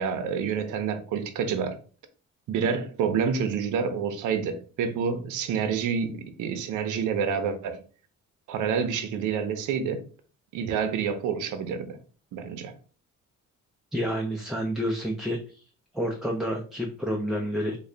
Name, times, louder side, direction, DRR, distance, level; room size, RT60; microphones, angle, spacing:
voice 1, 0.0-1.8 2.5-7.8 8.5-10.1 10.5-12.0 12.3-12.8, right 6 dB, 85° right, 0.6 m, -28 dB
voice 2, 13.9-15.6 15.9-17.8, equal, ahead, 0.4 m, -29 dB
3.2 x 2.2 x 3.7 m
cardioid pair, 90°, 30 cm